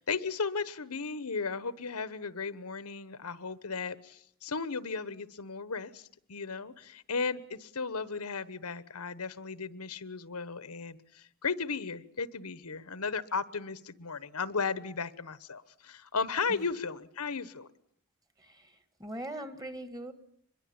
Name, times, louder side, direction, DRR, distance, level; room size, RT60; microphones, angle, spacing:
voice 1, 0.0-17.7, left 5 dB, 80° left, 15 dB, 1.2 m, -35 dB
voice 2, 18.4-20.1, right 1 dB, 15° right, 10 dB, 1.9 m, -41 dB
24.5 x 22.0 x 8.8 m, 0.66 s
head